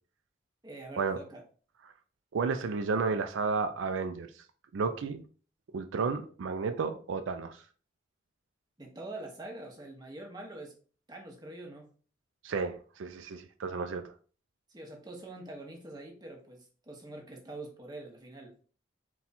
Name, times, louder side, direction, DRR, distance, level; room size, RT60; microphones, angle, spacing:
voice 1, 0.6-1.4 8.8-10.7 11.1-11.9 14.7-18.5, right 2 dB, 20° right, 0.9 m, -45 dB
voice 2, 2.3-4.4 4.7-5.2 5.7-7.6 12.4-14.1, right 4 dB, 75° right, 0.4 m, -32 dB
4.2 x 2.3 x 4.1 m
head